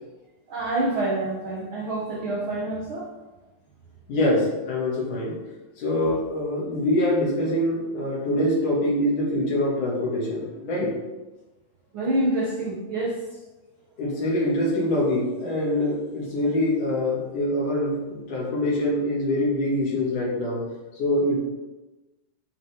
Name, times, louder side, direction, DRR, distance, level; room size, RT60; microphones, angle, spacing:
voice 1, 0.5-3.1 11.9-13.2, right 1 dB, 60° right, -3 dB, 1.4 m, -27 dB
voice 2, 4.1-5.3 5.8-10.9 14.0-20.6 21.0-21.4, left 1 dB, 75° left, -6 dB, 4.1 m, -24 dB
11.0 x 5.6 x 3.8 m, 1.1 s
omnidirectional pair, 3.5 m